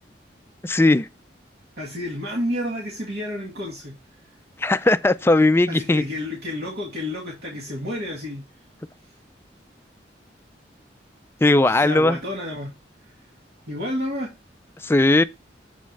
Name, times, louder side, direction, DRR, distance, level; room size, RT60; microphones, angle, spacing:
voice 1, 0.6-1.1 4.6-6.0 11.4-12.2 14.8-15.2, left 2 dB, 15° left, 0.3 m, -18 dB
voice 2, 1.8-3.9 5.7-8.4 11.6-12.7 13.7-14.3, left 1 dB, 65° right, 1.9 m, -30 dB
7.2 x 4.4 x 4.6 m
head